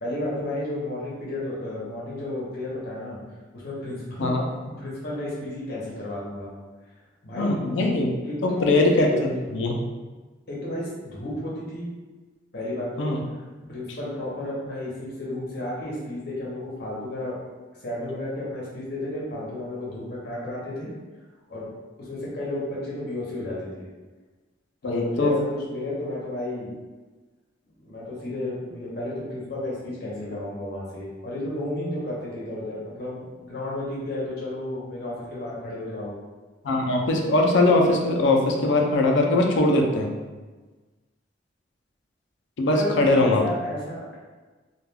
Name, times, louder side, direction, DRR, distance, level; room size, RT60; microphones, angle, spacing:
voice 1, 0.0-3.2 3.5-4.3 4.8-6.5 7.2-7.6 8.2-9.3 10.5-11.9 12.5-13.1 13.6-17.4 17.8-20.9 21.5-21.7 22.0-23.9 24.8-26.7 27.8-36.1 42.7-44.2, left 1 dB, 55° left, -6 dB, 0.8 m, -32 dB
voice 2, 7.4-8.1 8.4-9.8 13.0-13.2 24.8-25.4 36.6-40.1 42.6-43.4, left 2 dB, 75° left, 2 dB, 0.4 m, -21 dB
2.3 x 2.2 x 3.3 m, 1.3 s
head